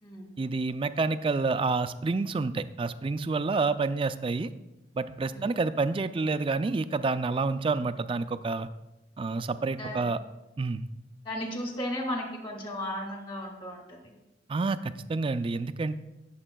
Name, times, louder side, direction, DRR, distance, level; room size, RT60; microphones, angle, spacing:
voice 1, 0.4-4.5 5.0-8.7 9.2-10.2 10.6-10.9 14.5-16.0, right 3 dB, 30° right, 12 dB, 0.3 m, -28 dB
voice 2, 11.2-14.1, left 1 dB, 30° left, 1 dB, 1.9 m, -35 dB
20.0 x 7.2 x 2.3 m, 0.98 s
head